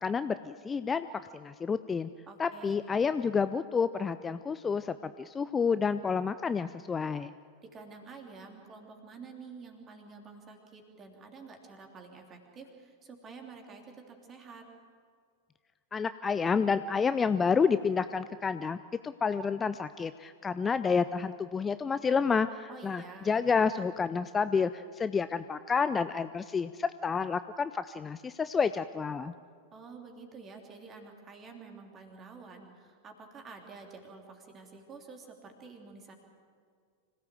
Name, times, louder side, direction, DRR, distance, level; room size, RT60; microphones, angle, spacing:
voice 1, 0.0-1.1 1.3-2.1 2.4-7.3 15.9-18.8 19.0-29.3, left 5 dB, 20° left, 13 dB, 0.5 m, -29 dB
voice 2, 2.3-2.9 7.6-14.6 22.7-23.4 29.7-36.1, right 4 dB, 25° right, 3 dB, 3.3 m, -49 dB
25.5 x 17.0 x 7.7 m, 2.1 s
figure-of-eight pair, 90°, 0 cm